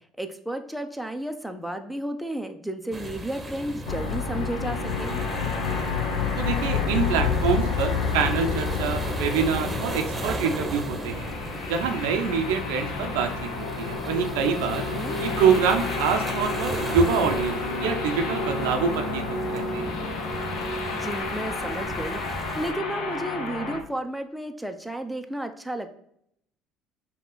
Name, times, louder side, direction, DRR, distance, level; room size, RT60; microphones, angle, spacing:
voice 1, 0.2-5.2 14.7-15.2 20.9-26.0, right 1 dB, ahead, 6 dB, 0.6 m, -33 dB
sound 1, 2.9-22.7, right 1 dB, 20° right, 0.9 m, -36 dB
sound 2, 3.9-23.8, left 4 dB, 70° left, 0.7 m, -30 dB
voice 2, 6.4-11.2 11.7-14.8 15.2-20.0, right 6 dB, 80° right, 5 dB, 0.6 m, -26 dB
5.5 x 2.3 x 3.8 m, 0.72 s
hypercardioid pair, 65°, 0 cm